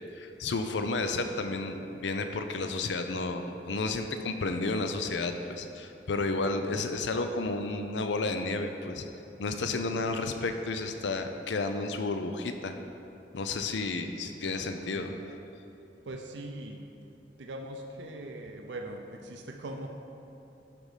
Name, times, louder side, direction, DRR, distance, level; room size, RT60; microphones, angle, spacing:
voice 1, 0.0-9.1 9.4-12.7 13.3-15.1, left 3 dB, 80° left, 7 dB, 0.5 m, -32 dB
voice 2, 14.5-15.3 16.1-16.9 17.4-19.9, right 1 dB, 85° right, 3 dB, 0.6 m, -41 dB
11.5 x 5.2 x 4.9 m, 2.9 s
head